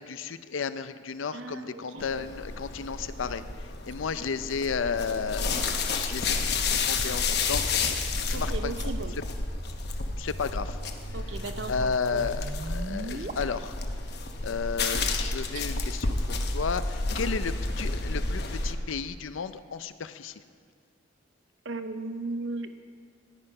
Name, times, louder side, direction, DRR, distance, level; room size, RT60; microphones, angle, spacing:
voice 1, 0.0-7.9 8.3-8.9 10.2-10.8 11.7-13.8 14.4-20.4, left 5 dB, 85° left, 12 dB, 0.5 m, -33 dB
voice 2, 1.3-2.2 4.1-4.2 5.5-5.8 8.3-9.1 11.1-12.2 17.2-17.3 21.6-22.8, right 2 dB, 75° right, 9 dB, 0.8 m, -37 dB
sound 1, 2.0-18.7, left 3 dB, 55° left, 1.0 m, -31 dB
sound 2, 7.3-13.3, right 2 dB, 40° right, 0.6 m, -42 dB
13.5 x 10.0 x 5.5 m, 2.1 s
head